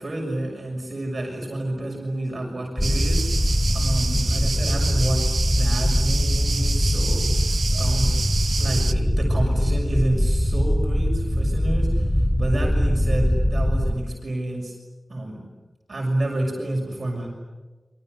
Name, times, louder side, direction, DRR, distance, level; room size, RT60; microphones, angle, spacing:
voice 1, 0.0-3.2 3.7-5.3 5.6-8.2 8.6-14.7 15.1-15.4 15.9-17.3, right 1 dB, 50° right, 0 dB, 6.4 m, -29 dB
sound 1, 2.8-13.9, equal, 10° left, 2.0 m, -22 dB
sound 2, 2.8-8.9, right 4 dB, 75° right, 1.1 m, -29 dB
28.5 x 25.0 x 8.1 m, 1.2 s
wide cardioid pair, 105°, 0 cm